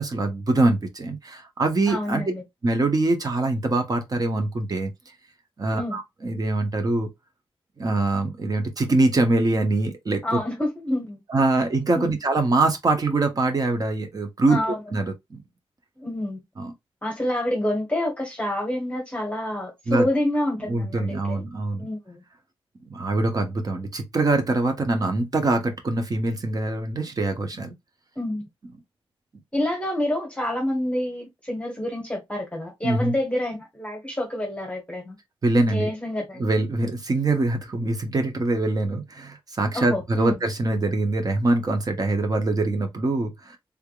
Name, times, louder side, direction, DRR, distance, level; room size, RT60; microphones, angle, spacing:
voice 1, 0.0-2.2 2.6-4.9 5.6-7.1 7.8-10.4 11.3-14.6 14.9-15.4 16.6-16.7 19.9-20.1 20.7-21.9 22.9-27.7 32.8-33.1 35.4-35.9 36.4-43.6, right 2 dB, 40° right, 0.9 m, -23 dB
voice 2, 1.9-2.4 5.7-6.0 10.2-11.2 11.9-12.1 14.5-14.8 16.0-16.4 17.0-21.4 21.8-22.2 28.2-28.4 29.5-35.2 35.7-36.4 39.7-40.3, left 1 dB, 15° left, 1.1 m, -28 dB
3.5 x 3.4 x 2.3 m
wide cardioid pair, 180°, 10 cm